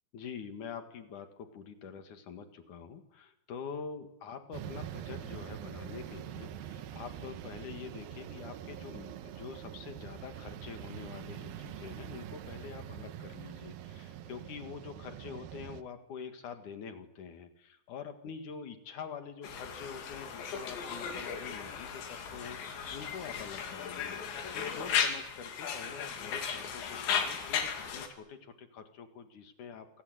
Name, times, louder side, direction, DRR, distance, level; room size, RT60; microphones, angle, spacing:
voice 1, 0.1-30.0, left 6 dB, 50° left, 7 dB, 2.9 m, -46 dB
sound 1, 4.5-15.8, right 10 dB, 70° right, 2.4 m, -44 dB
Conversation, 19.4-28.1, left 7 dB, 75° left, 5.0 m, -36 dB
27.0 x 26.0 x 8.2 m, 0.85 s
omnidirectional pair, 5.3 m